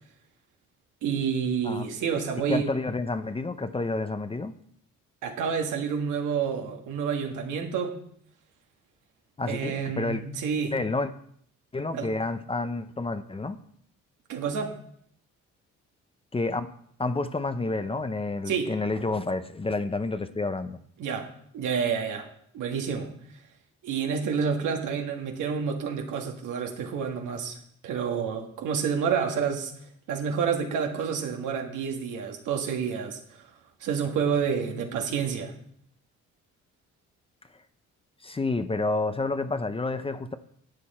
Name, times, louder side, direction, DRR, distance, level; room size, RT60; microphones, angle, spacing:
voice 1, 1.0-2.7 5.2-8.0 9.5-10.8 11.9-12.1 14.3-14.7 18.5-18.7 21.0-21.3 21.5-22.3 22.5-23.1 23.8-27.6 27.8-29.7 30.1-33.4 33.8-35.5, right 6 dB, 85° right, 3 dB, 1.8 m, -29 dB
voice 2, 2.5-4.5 9.4-10.2 10.7-11.1 11.7-13.6 16.3-16.7 17.0-20.8 38.2-40.3, left 3 dB, 20° left, 11 dB, 0.7 m, -29 dB
11.5 x 8.4 x 4.3 m, 0.66 s
cardioid pair, 90°, 30 cm